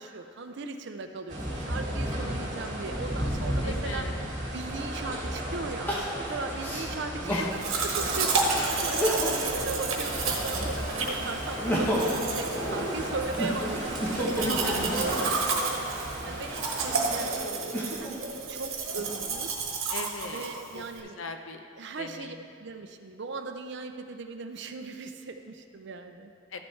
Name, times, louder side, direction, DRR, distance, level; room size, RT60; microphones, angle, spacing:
voice 1, 0.0-4.1 4.5-5.9 6.3-15.9 16.2-19.5 20.2-21.2 21.8-26.3, right 3 dB, 55° right, 6 dB, 0.5 m, -38 dB
sound 1, 1.3-17.4, right 1 dB, 35° right, 2.2 m, -34 dB
voice 2, 3.6-4.2 7.3-7.7 8.7-9.0 14.4-15.0 19.9-20.8 21.2-21.7 22.0-22.3 26.5-26.7, left 3 dB, 70° left, 6 dB, 0.7 m, -38 dB
Crying sobbing, 4.5-4.6 5.9-7.6 8.1-8.2 8.8-9.5 9.9-10.9 11.4-15.4 16.1-18.2 18.8-19.6, equal, 10° left, 1.0 m, -32 dB
Domestic sounds home sounds, 7.6-21.0, right 4 dB, 75° right, 1.2 m, -31 dB
13.0 x 7.3 x 3.2 m, 2.4 s
head